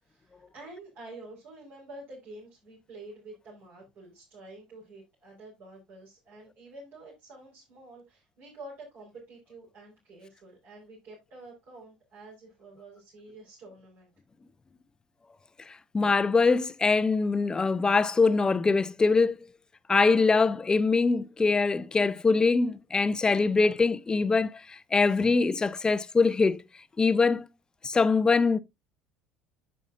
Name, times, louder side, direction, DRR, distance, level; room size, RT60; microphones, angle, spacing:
voice 1, 0.0-14.1, right 2 dB, 50° right, 4.2 m, -48 dB
voice 2, 15.9-19.4 19.9-26.6 27.0-27.5 27.8-28.6, left 4 dB, 20° left, 0.5 m, -23 dB
9.8 x 7.9 x 2.4 m
figure-of-eight pair, 60°, 4 cm